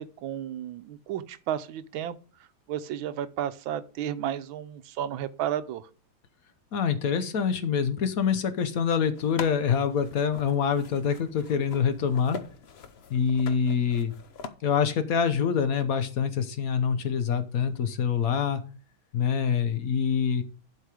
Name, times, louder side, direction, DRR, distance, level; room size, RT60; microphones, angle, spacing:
voice 1, 0.0-2.2 2.7-5.9, right 10 dB, 80° right, 1.4 m, -33 dB
voice 2, 6.7-12.4 13.1-14.1 14.6-18.6 19.1-20.4, left 7 dB, 60° left, 1.0 m, -25 dB
sound 1, 9.1-14.5, left 5 dB, 85° left, 0.5 m, -43 dB
11.5 x 4.8 x 4.9 m
omnidirectional pair, 2.2 m